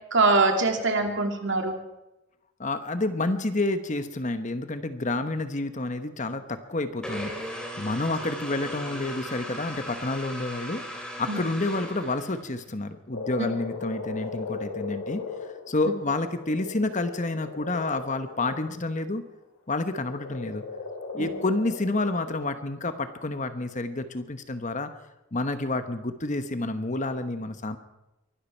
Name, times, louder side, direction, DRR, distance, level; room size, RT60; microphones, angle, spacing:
voice 1, 0.1-1.8 11.3-11.4 13.4-13.5 21.1-21.3, right 3 dB, 60° right, 4 dB, 2.5 m, -23 dB
voice 2, 2.6-10.8 11.2-15.2 15.7-19.2 19.7-20.6 21.1-24.9 25.3-27.8, left 2 dB, 35° left, 10 dB, 1.1 m, -29 dB
sound 1, 7.0-12.6, equal, 5° left, 3.2 m, -37 dB
Frog, 13.1-19.0 19.9-22.4, left 4 dB, 80° left, 3.9 m, -37 dB
23.5 x 12.5 x 4.5 m, 0.96 s
head